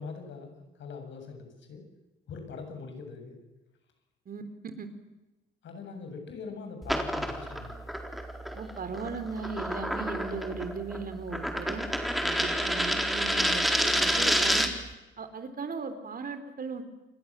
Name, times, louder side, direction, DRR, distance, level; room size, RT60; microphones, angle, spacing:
voice 1, 0.0-1.8 2.3-3.4 5.6-7.7, left 4 dB, 70° left, 5 dB, 7.9 m, -42 dB
sound 1, 6.8-14.9, equal, ahead, 4.2 m, -29 dB
voice 2, 8.5-11.8 12.2-14.7 15.2-16.8, right 4 dB, 45° right, 10 dB, 3.9 m, -37 dB
29.0 x 23.5 x 7.6 m, 1.0 s
cardioid pair, 90°, 20 cm